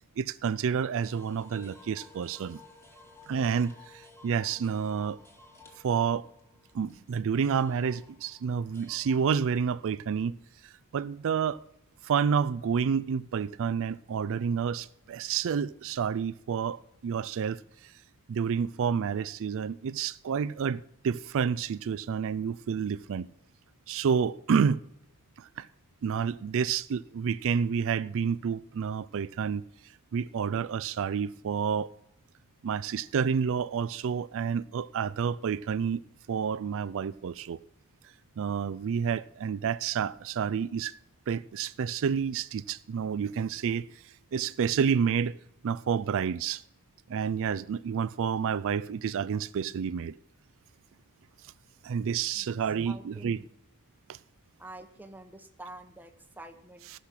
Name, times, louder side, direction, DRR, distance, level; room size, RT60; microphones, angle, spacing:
voice 1, 0.2-2.6 3.3-5.2 5.8-6.3 6.7-10.4 10.6-11.6 12.0-17.9 18.3-23.3 23.9-24.8 25.4-25.7 26.0-29.6 30.1-31.9 32.6-36.0 36.3-37.6 38.4-40.9 41.3-45.4 45.6-46.6 47.1-50.2 51.8-53.4 54.1-54.2, right 7 dB, 65° right, 0.4 m, -29 dB
sound 1, 1.0-9.6, left 3 dB, 10° left, 2.3 m, -55 dB
voice 2, 52.8-53.4 54.6-56.9, right 2 dB, 10° right, 1.0 m, -47 dB
15.0 x 6.4 x 5.8 m
head